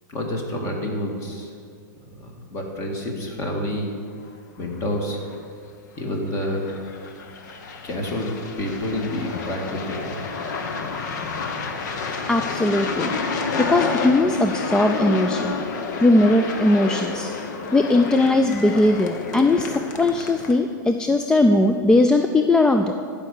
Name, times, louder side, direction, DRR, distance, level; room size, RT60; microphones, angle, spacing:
voice 1, 0.1-1.5 2.2-3.9 4.6-5.2 6.0-6.7 7.8-8.3 8.6-10.1, left 1 dB, 30° left, 1 dB, 2.0 m, -28 dB
sound 1, 4.7-4.8 5.2-5.4 6.4-20.5, left 4 dB, 65° left, 1.1 m, -29 dB
voice 2, 12.3-13.1 13.6-15.5 16.0-17.3 17.7-22.9, left 2 dB, 5° left, 5 dB, 0.3 m, -19 dB
14.5 x 5.3 x 6.6 m, 2.3 s
hypercardioid pair, 135°, 10 cm